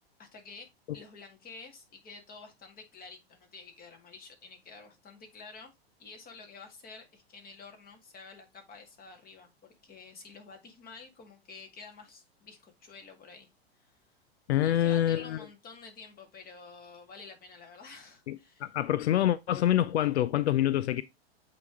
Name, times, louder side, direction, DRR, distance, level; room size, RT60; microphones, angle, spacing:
voice 1, 0.2-0.7 0.9-5.7 6.0-13.5 13.8-13.9 14.6-18.7, left 4 dB, 30° left, 2.0 m, -50 dB
voice 2, 14.5-15.5 18.3-21.0, left 12 dB, 90° left, 0.5 m, -26 dB
8.2 x 3.3 x 3.5 m
hypercardioid pair, 115°, 32 cm